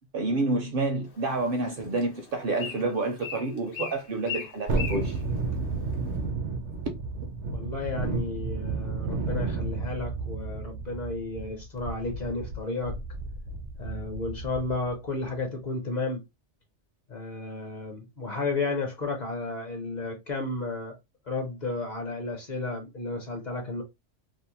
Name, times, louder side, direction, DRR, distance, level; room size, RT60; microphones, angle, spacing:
voice 1, 0.1-5.2, right 2 dB, 60° right, 0.6 m, -29 dB
Bird, 1.0-6.2, left 7 dB, 70° left, 1.1 m, -41 dB
Thunderstorm, 4.7-14.9 15.2-15.3, right 3 dB, 85° right, 1.0 m, -32 dB
voice 2, 7.5-12.9 13.8-16.2 17.1-21.0 21.3-23.8, left 3 dB, 45° left, 0.7 m, -33 dB
2.7 x 2.0 x 2.8 m
omnidirectional pair, 1.2 m